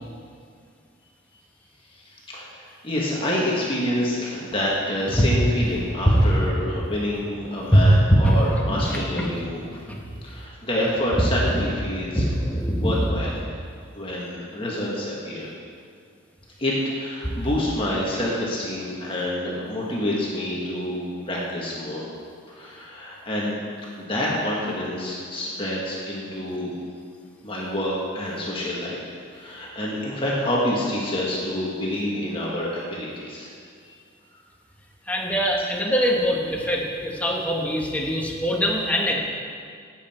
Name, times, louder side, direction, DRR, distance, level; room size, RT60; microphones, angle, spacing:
voice 1, 1.9-9.7 10.2-12.3 12.8-13.5 13.9-15.5 16.6-22.1 22.5-23.5 24.0-26.7 27.4-33.5 33.8-33.9, left 1 dB, 25° left, -5 dB, 1.8 m, -27 dB
voice 2, 8.7-9.3 9.9-10.0 11.5-11.6 12.4-12.9 35.1-39.1, equal, 5° left, -2 dB, 1.4 m, -22 dB
17.5 x 7.7 x 4.5 m, 2.2 s
head